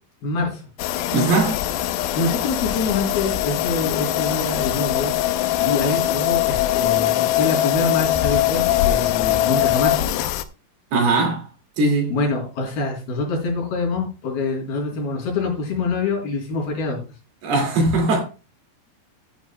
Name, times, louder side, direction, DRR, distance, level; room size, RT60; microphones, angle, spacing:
voice 1, 0.2-0.6 2.2-5.1 5.6-10.0 12.1-17.0, left 3 dB, 60° left, 5.5 m, -25 dB
sound 1, 0.8-10.4, left 13 dB, 85° left, 2.1 m, -22 dB
voice 2, 1.1-1.6 10.9-11.5 11.8-12.1 17.4-18.2, right 3 dB, 60° right, 4.1 m, -19 dB
15.5 x 9.4 x 2.3 m
omnidirectional pair, 5.2 m